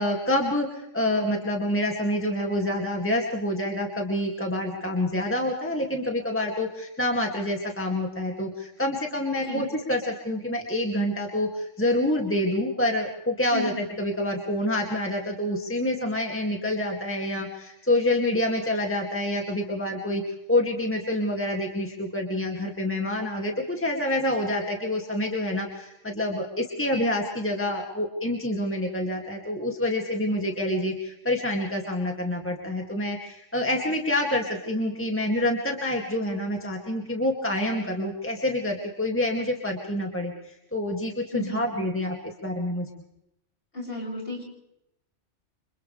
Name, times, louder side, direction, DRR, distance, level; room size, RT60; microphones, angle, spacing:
voice 1, 0.0-20.2 20.5-42.9, left 1 dB, 10° left, 0 dB, 2.4 m, -27 dB
voice 2, 41.3-41.7 43.7-44.4, left 1 dB, 50° left, -2 dB, 7.1 m, -33 dB
29.5 x 26.5 x 3.4 m, 0.85 s
omnidirectional pair, 1.3 m